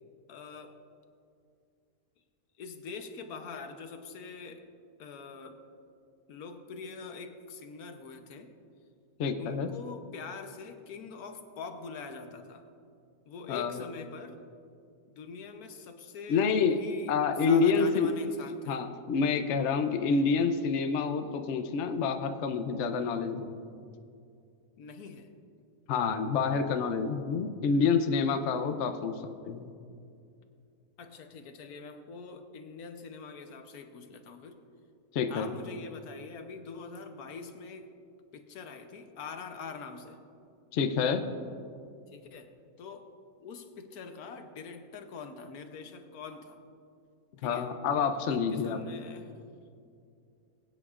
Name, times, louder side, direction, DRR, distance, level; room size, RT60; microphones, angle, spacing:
voice 1, 0.3-0.8 2.6-4.7 5.0-5.6 6.3-8.6 9.4-12.6 13.3-14.4 15.2-18.9 24.8-25.3 31.0-34.6 35.3-37.9 38.3-40.2 42.1-42.5 42.8-43.1 43.4-46.6 47.4-47.7 48.3-49.3, left 5 dB, 80° left, 7 dB, 1.3 m, -44 dB
voice 2, 9.2-9.7 13.5-13.7 16.3-16.8 17.1-18.1 18.7-23.7 25.9-29.1 29.5-29.7 35.1-35.5 40.7-41.2 47.4-48.8, left 5 dB, 60° left, 7 dB, 0.9 m, -28 dB
21.0 x 9.2 x 2.4 m, 2.5 s
omnidirectional pair, 1.6 m